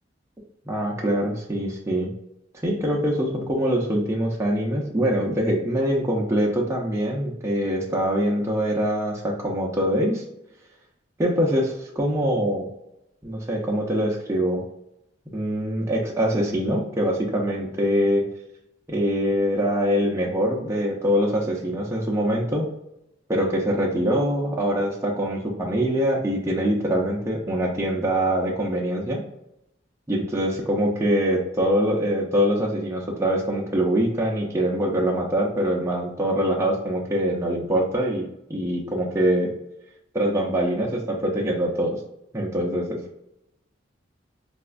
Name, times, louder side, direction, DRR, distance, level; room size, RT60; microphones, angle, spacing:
voice 1, 0.7-2.1 2.6-10.2 11.2-12.7 13.2-14.6 15.3-18.2 18.9-22.7 23.3-29.2 30.1-38.2 38.5-39.5 40.1-42.0 42.3-43.0, equal, 15° right, -3 dB, 0.5 m, -24 dB
4.1 x 2.3 x 2.4 m, 0.84 s
head